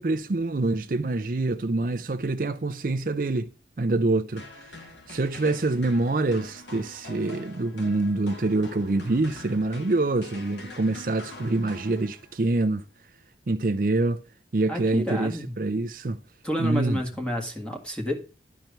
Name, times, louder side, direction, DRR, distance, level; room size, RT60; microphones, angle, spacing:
voice 1, 0.0-3.5 3.8-4.5 5.1-12.8 13.5-14.2 14.5-15.3 15.6-16.2 16.6-17.0, right 2 dB, 50° right, 0.5 m, -25 dB
sound 1, 4.4-12.5, left 2 dB, 90° left, 2.0 m, -45 dB
voice 2, 14.7-15.5 16.4-18.1, equal, 5° left, 1.6 m, -30 dB
12.0 x 4.5 x 6.6 m
head